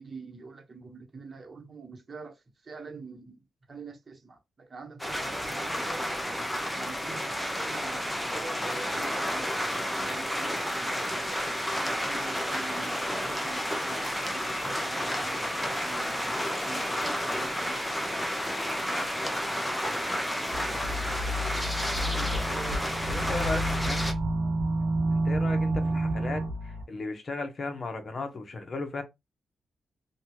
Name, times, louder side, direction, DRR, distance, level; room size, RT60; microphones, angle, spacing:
voice 1, 0.0-6.0 6.7-11.3 11.8-18.0 22.1-23.7, right 4 dB, 40° right, 0.9 m, -45 dB
sound 1, 5.0-24.1, equal, 10° left, 0.7 m, -31 dB
sound 2, 20.5-26.8, right 1 dB, 75° right, 1.1 m, -29 dB
voice 2, 23.1-24.0 25.1-29.0, left 3 dB, 50° left, 0.8 m, -35 dB
2.7 x 2.3 x 2.8 m
cardioid pair, 60°, 0 cm